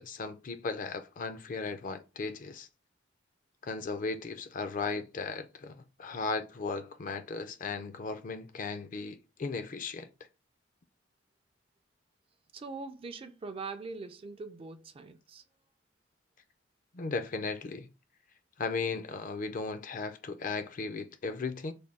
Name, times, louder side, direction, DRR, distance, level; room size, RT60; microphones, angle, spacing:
voice 1, 0.0-2.7 3.6-10.1 16.9-17.9 18.6-21.7, left 4 dB, 45° left, 0.4 m, -36 dB
voice 2, 12.5-15.4, right 4 dB, 30° right, 0.3 m, -42 dB
3.4 x 2.2 x 4.0 m
head